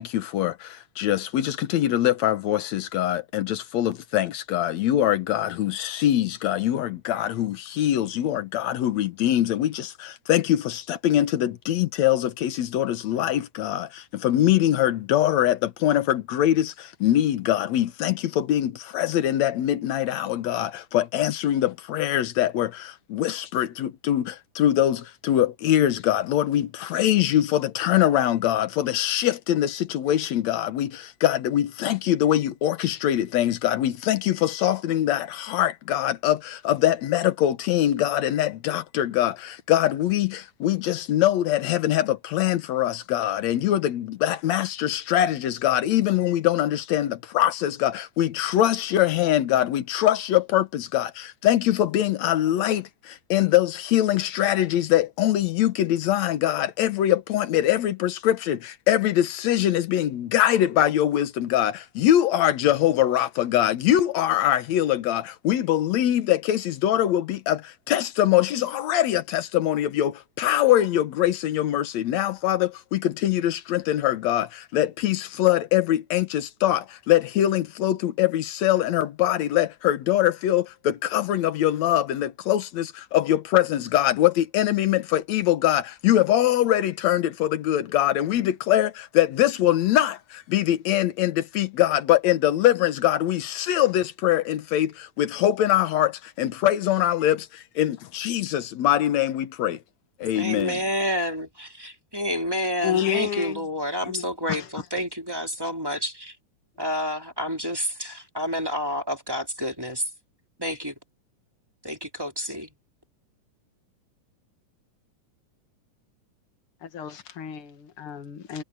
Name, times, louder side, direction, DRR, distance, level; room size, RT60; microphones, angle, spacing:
voice 1, 0.0-99.8 100.2-100.8, left 12 dB, 70° left, 2.3 m, -23 dB
voice 2, 100.3-101.5 102.1-106.3 106.8-110.1 110.6-110.9 111.8-112.7, equal, 10° right, 2.8 m, -29 dB
voice 3, 102.8-103.6 104.0-104.7 116.8-118.6, left 9 dB, 50° left, 2.5 m, -30 dB
omnidirectional pair, 3.5 m